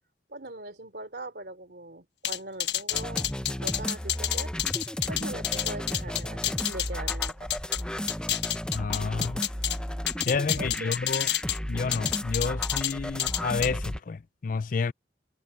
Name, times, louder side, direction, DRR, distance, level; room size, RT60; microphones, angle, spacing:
voice 1, 0.3-3.3 3.6-4.5 5.1-7.5 10.6-11.0, right 1 dB, 60° right, 3.0 m, -41 dB
sound 1, 2.2-7.8 8.1-9.8 10.1-11.6 11.9-12.9 13.2-13.7, left 12 dB, 75° left, 1.4 m, -29 dB
sound 2, 2.9-14.0, equal, 5° left, 0.6 m, -34 dB
sound 3, 5.5-10.5, right 2 dB, 35° right, 3.7 m, -54 dB
voice 2, 8.7-9.4 10.3-11.3 11.7-14.9, left 4 dB, 50° left, 0.4 m, -30 dB
head